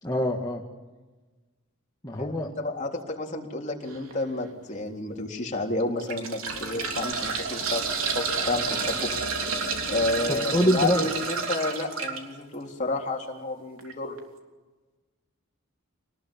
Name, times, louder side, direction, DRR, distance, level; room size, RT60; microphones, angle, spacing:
voice 1, 0.0-0.6 2.0-2.5 10.3-11.1, equal, 20° left, -1 dB, 1.9 m, -25 dB
voice 2, 2.2-7.9 8.1-9.1 9.9-14.2, left 2 dB, 35° left, 1 dB, 3.6 m, -31 dB
sound 1, 3.9-4.1 4.8-4.9 5.8-12.2 13.8-13.9 14.2-14.3, right 5 dB, 80° right, 3.5 m, -30 dB
sound 2, 6.4-11.4, left 2 dB, 80° left, 2.3 m, -41 dB
27.0 x 20.0 x 8.8 m, 1.2 s
head